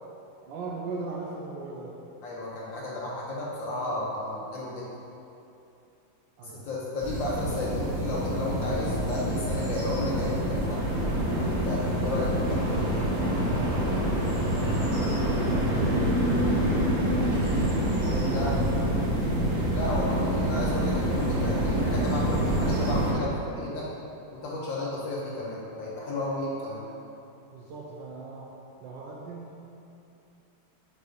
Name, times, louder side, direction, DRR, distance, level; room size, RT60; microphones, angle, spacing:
voice 1, 0.5-2.0 3.7-4.0 6.4-6.7 14.6-17.7 18.0-18.9 27.5-28.5 28.8-29.7, right 3 dB, 75° right, -3 dB, 1.3 m, -40 dB
voice 2, 2.2-4.9 6.5-10.8 11.4-12.8 18.3-18.6 19.7-23.9 24.3-26.8, left 2 dB, 70° left, -6 dB, 1.6 m, -33 dB
sound 1, 7.0-23.1, right 1 dB, 55° right, 2.1 m, -26 dB
4.8 x 4.7 x 5.1 m, 2.8 s
omnidirectional pair, 2.1 m